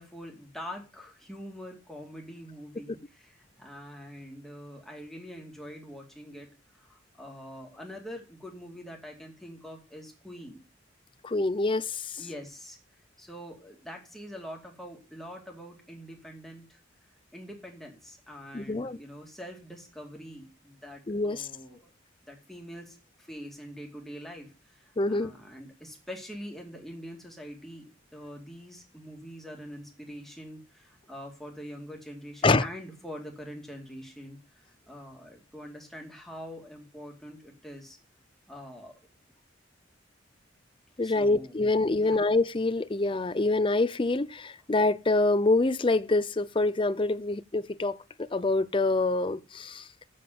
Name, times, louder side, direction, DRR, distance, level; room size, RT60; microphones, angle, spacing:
voice 1, 0.0-6.5 6.7-10.6 12.2-12.8 13.2-16.8 17.3-21.9 22.3-38.0 38.5-38.9 41.0-41.5 42.0-42.2, equal, ahead, 2.3 m, -44 dB
voice 2, 11.2-12.2 18.5-19.0 21.1-21.5 25.0-25.3 32.4-32.7 41.0-49.9, left 2 dB, 25° left, 0.5 m, -26 dB
7.7 x 7.2 x 7.7 m
head